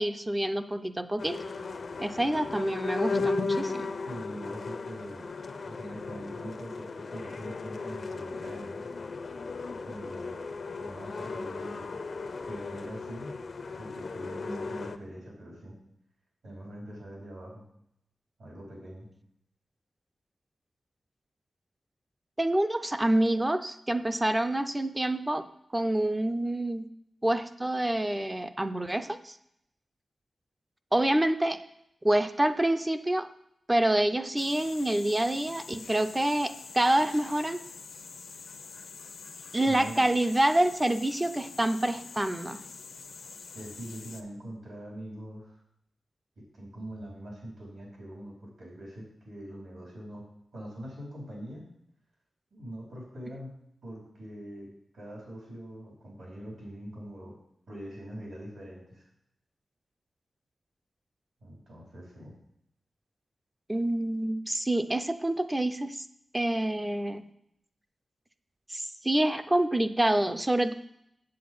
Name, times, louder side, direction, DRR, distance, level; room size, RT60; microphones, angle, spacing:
voice 1, 0.0-1.4 2.0-3.9 22.4-25.4 25.7-26.9 27.2-29.4 30.9-31.6 32.0-33.3 33.7-37.6 39.5-42.6 63.7-66.1 66.3-67.2 68.7-70.7, right 1 dB, 10° right, 9 dB, 0.5 m, -27 dB
sound 1, 1.2-15.0, left 3 dB, 50° left, 0.5 m, -36 dB
voice 2, 4.1-5.3 5.6-8.9 9.9-11.9 12.5-13.3 13.8-15.7 16.4-17.6 18.4-19.1 39.6-40.1 43.5-45.6 46.5-50.2 50.5-51.7 52.5-53.5 53.8-57.3 57.7-59.0 61.4-62.3, equal, 70° right, -3 dB, 4.6 m, -43 dB
sound 2, 34.4-44.2, left 5 dB, 85° left, 0.8 m, -46 dB
8.2 x 7.7 x 5.5 m, 0.77 s
wide cardioid pair, 180°, 0 cm